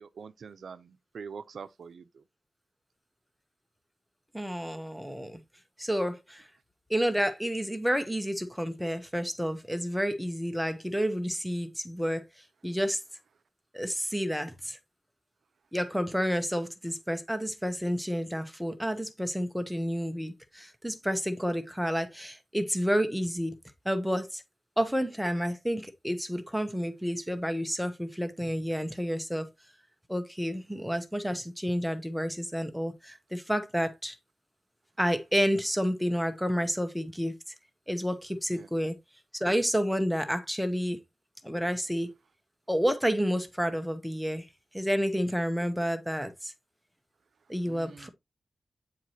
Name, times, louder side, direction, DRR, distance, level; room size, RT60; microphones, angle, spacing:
voice 1, 0.0-2.0 38.5-38.7 47.7-48.1, right 6 dB, 80° right, 0.6 m, -44 dB
voice 2, 4.3-5.4 5.8-6.5 6.9-12.2 12.6-13.0 13.7-14.8 15.7-23.6 23.8-24.4 24.8-29.5 30.1-34.1 35.0-37.5 37.9-39.0 39.3-41.0 41.4-42.1 42.7-44.5 44.7-46.5 47.5-48.1, equal, ahead, 0.9 m, -30 dB
8.9 x 4.7 x 2.8 m
wide cardioid pair, 130°, 0 cm